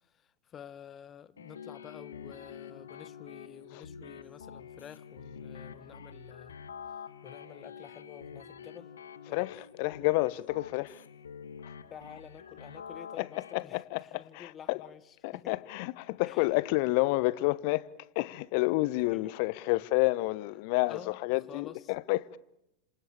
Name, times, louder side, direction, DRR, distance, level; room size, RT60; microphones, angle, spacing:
voice 1, 0.1-6.6 7.2-8.9 9.3-9.5 11.9-15.6 16.2-16.5 19.0-19.3 19.6-19.7 20.9-21.2 21.5-21.8, left 9 dB, 25° left, 1.3 m, -50 dB
sound 1, 1.4-13.5, left 7 dB, 70° left, 1.7 m, -47 dB
voice 2, 9.8-11.0 13.2-14.8 15.2-17.9 18.1-22.4, left 21 dB, 45° left, 1.0 m, -29 dB
27.0 x 27.0 x 7.3 m
figure-of-eight pair, 95°, 0 cm